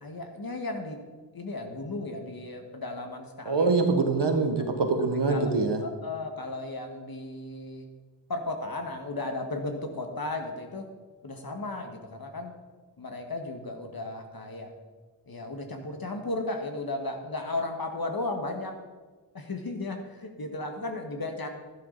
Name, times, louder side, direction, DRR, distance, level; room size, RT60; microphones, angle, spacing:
voice 1, 0.0-1.0 1.3-4.1 4.6-4.7 5.3-5.5 5.8-7.9 8.3-10.9 11.2-12.5 13.0-14.7 15.3-18.8 19.3-21.5, left 2 dB, 60° left, 4 dB, 1.7 m, -35 dB
voice 2, 3.4-5.8, right 3 dB, 85° right, 5 dB, 1.5 m, -24 dB
12.5 x 11.0 x 4.0 m, 1.4 s
wide cardioid pair, 75°, 41 cm